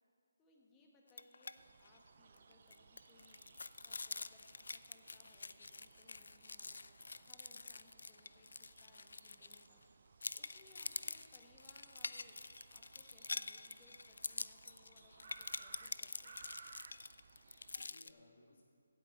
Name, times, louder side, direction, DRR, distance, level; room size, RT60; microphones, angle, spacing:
voice 1, 0.4-3.4 3.8-6.8 7.2-12.4 12.7-16.6, left 2 dB, 15° left, -1 dB, 1.6 m, -68 dB
sound 1, 1.1-1.5 1.8-2.0 2.4-9.8 10.2-18.1, left 3 dB, 75° left, 0.4 m, -47 dB
sound 2, 1.6-17.9, right 6 dB, 50° right, 0.3 m, -62 dB
voice 2, 3.6-3.9 10.7-11.1 17.3-18.6, left 2 dB, 55° left, -2 dB, 2.0 m, -67 dB
15.5 x 8.5 x 4.3 m, 2.1 s
figure-of-eight pair, 155°, 0 cm